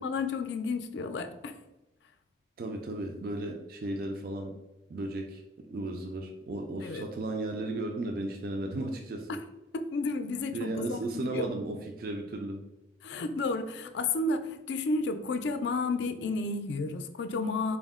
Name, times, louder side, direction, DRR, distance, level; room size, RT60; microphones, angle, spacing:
voice 1, 0.0-1.5 6.8-7.1 9.3-9.4 9.7-11.5 13.0-17.8, left 3 dB, 75° left, 9 dB, 0.4 m, -32 dB
voice 2, 2.6-4.6 4.9-9.4 10.5-12.6, right 2 dB, 50° right, 3 dB, 0.3 m, -35 dB
4.5 x 2.1 x 3.5 m, 0.98 s
head